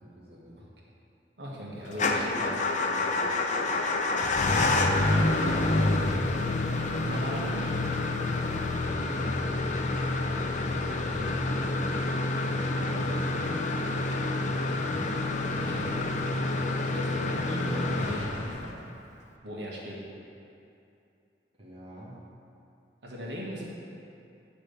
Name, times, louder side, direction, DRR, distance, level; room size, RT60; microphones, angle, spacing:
voice 1, 0.0-0.6 8.9-9.4 12.6-14.3 16.4-16.9 21.6-22.2, equal, 35° right, -6 dB, 1.1 m, -46 dB
voice 2, 1.4-3.1 5.7-6.6 7.0-7.7 10.9-11.3 14.9-15.2 15.5-16.1 16.9-18.7 19.4-20.0 23.0-23.7, equal, 75° right, -4 dB, 1.4 m, -38 dB
Motor vehicle (road) / Engine starting / Idling, 1.9-18.9, left 2 dB, 45° left, 0.5 m, -28 dB
8.7 x 3.4 x 6.5 m, 2.6 s
head